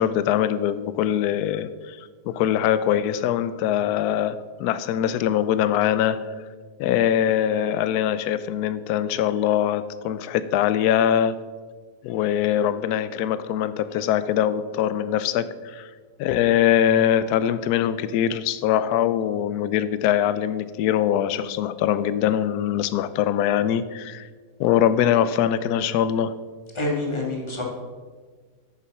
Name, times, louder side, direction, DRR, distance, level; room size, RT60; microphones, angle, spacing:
voice 1, 0.0-6.4 6.8-11.4 12.0-15.9 16.2-24.3 24.6-26.3, left 10 dB, 75° left, 14 dB, 1.0 m, -22 dB
voice 2, 26.7-27.6, left 2 dB, 15° left, -1 dB, 1.6 m, -27 dB
9.2 x 7.0 x 4.7 m, 1.4 s
omnidirectional pair, 1.8 m